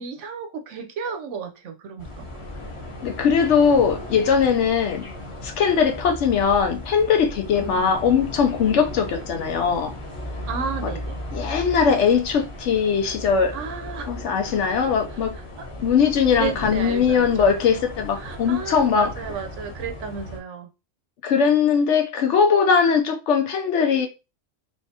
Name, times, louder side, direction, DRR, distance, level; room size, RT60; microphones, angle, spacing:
voice 1, 0.0-2.4 7.6-8.0 10.5-11.2 13.5-14.2 15.6-15.7 16.3-17.5 18.2-20.7, right 6 dB, 70° right, 1.0 m, -33 dB
sound 1, 2.0-20.4, left 1 dB, 25° left, 0.9 m, -36 dB
voice 2, 3.0-5.0 5.4-9.9 10.8-10.9 11.3-13.5 14.1-15.3 15.8-19.1 21.2-24.1, left 6 dB, 70° left, 0.9 m, -20 dB
3.3 x 3.2 x 2.8 m
omnidirectional pair, 1.3 m